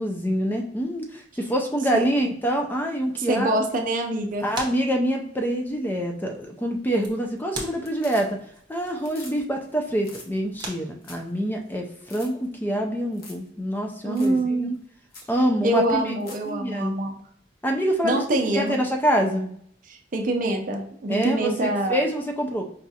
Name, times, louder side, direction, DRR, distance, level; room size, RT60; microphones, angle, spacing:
voice 1, 0.0-3.6 4.4-8.4 8.7-14.7 15.3-16.2 16.5-17.0 17.6-19.5 21.1-22.6, equal, 10° left, 3 dB, 0.4 m, -26 dB
sound 1, 3.0-12.6, right 2 dB, 25° right, 0.9 m, -44 dB
voice 2, 3.2-4.5 14.0-14.8 15.6-17.2 18.0-18.8 19.9-22.0, right 1 dB, 45° right, 3 dB, 0.5 m, -25 dB
sound 2, 6.8-7.4 7.7-8.6 8.9-9.4 9.6-9.7 10.0-10.3 10.7-10.8 11.0-11.3 11.6-11.7 12.0-12.3 13.1-13.5 13.7-13.8 14.2-14.4 14.7-14.8 15.1-15.3 16.0-16.5 18.7-18.8, left 3 dB, 50° left, 0.9 m, -45 dB
4.9 x 2.3 x 2.7 m, 0.66 s
head